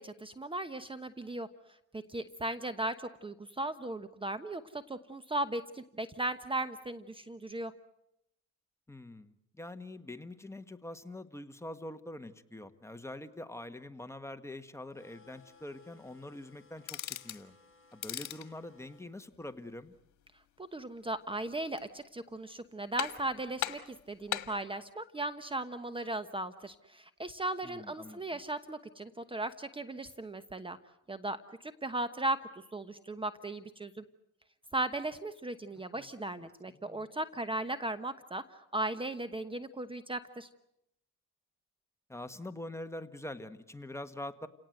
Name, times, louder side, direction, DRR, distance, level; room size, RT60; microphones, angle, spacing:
voice 1, 0.0-1.5 1.9-7.7 20.6-30.8 31.1-34.0 34.7-40.5, right 2 dB, 15° right, 11 dB, 1.1 m, -37 dB
voice 2, 8.9-17.6 17.9-20.0 27.6-28.2 35.9-36.1 36.4-37.1 42.1-44.5, left 1 dB, 10° left, 8 dB, 1.4 m, -45 dB
sound 1, 14.9-19.1, left 4 dB, 45° left, 4.5 m, -62 dB
sound 2, 16.8-17.4 17.9-18.5 21.5-22.0 22.4-22.5 23.0-23.3 23.6-24.6, left 12 dB, 70° left, 1.6 m, -38 dB
29.5 x 18.0 x 7.9 m, 0.81 s
cardioid pair, 90°, 30 cm